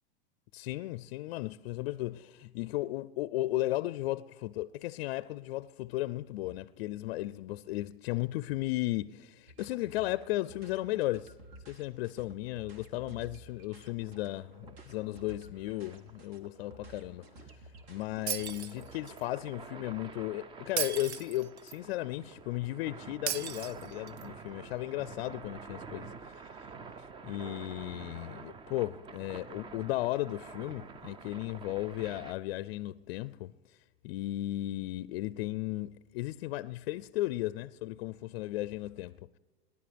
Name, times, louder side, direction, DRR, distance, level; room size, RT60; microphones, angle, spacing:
voice 1, 0.5-11.3 11.7-26.7 27.0-39.1, left 17 dB, 60° left, 0.4 m, -35 dB
sound 1, 9.5-18.9, right 2 dB, 65° right, 2.2 m, -53 dB
sound 2, 14.0-32.3, right 5 dB, 15° right, 0.4 m, -49 dB
Shatter, 18.3-19.2 20.8-21.8 23.3-24.3, right 10 dB, 85° right, 0.7 m, -36 dB
28.0 x 11.0 x 3.4 m
hypercardioid pair, 115°, 33 cm